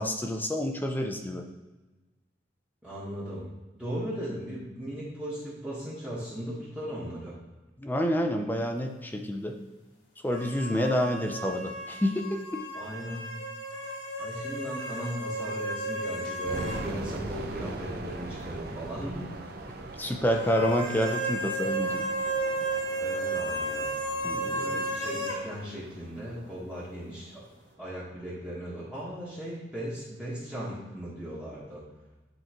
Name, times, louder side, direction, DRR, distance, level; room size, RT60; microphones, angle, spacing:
voice 1, 0.0-1.5 7.8-9.5 10.2-12.3 12.5-12.6 16.9-17.0 20.0-22.1 24.2-24.8, equal, 10° left, 3 dB, 0.5 m, -28 dB
voice 2, 2.8-3.5 3.7-7.4 12.7-13.3 14.2-19.3 23.0-24.0 24.6-27.4 27.8-31.8, equal, 5° right, -9 dB, 1.4 m, -37 dB
sound 1, 10.3-16.9 17.1-17.2 20.3-25.4, right 1 dB, 75° left, 1.5 m, -33 dB
sound 2, 16.5-27.3, right 2 dB, 55° right, 0.6 m, -41 dB
10.0 x 3.8 x 3.0 m, 1.2 s
head